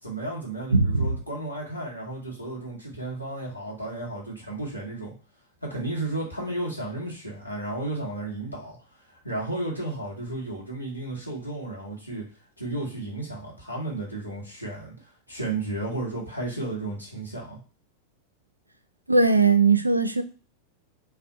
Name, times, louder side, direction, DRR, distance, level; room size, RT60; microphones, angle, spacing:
voice 1, 0.0-5.1 5.6-8.8 9.2-12.2 12.6-17.6, right 2 dB, 90° left, 1.3 m, -33 dB
voice 2, 0.7-1.1 19.1-20.2, right 4 dB, 85° right, 0.3 m, -19 dB
3.3 x 2.3 x 3.9 m
figure-of-eight pair, 90°, 0 cm